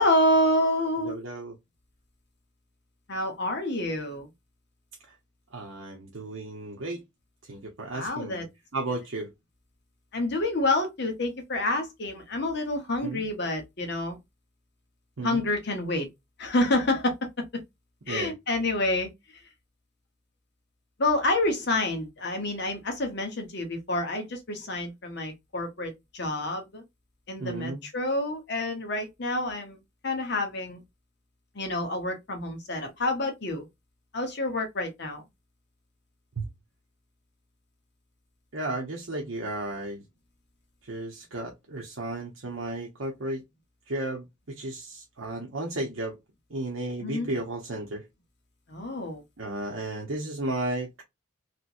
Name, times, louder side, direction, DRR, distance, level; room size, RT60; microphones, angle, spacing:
voice 1, 0.0-1.1 3.1-4.3 7.9-8.4 10.1-14.2 15.2-16.1 16.4-17.1 18.1-19.1 21.0-26.8 27.3-29.8 30.0-30.8 31.5-33.6 34.1-35.2 47.0-47.3 48.7-49.2, left 1 dB, 55° left, 0.9 m, -28 dB
voice 2, 1.0-1.5 5.5-7.0 7.5-8.5 8.7-9.3 13.0-13.2 15.2-15.4 18.1-18.3 27.4-27.8 36.4-36.5 38.5-40.0 40.8-43.4 43.9-46.2 46.5-48.0 49.4-51.0, right 2 dB, 65° right, 0.8 m, -34 dB
3.2 x 2.9 x 2.5 m
head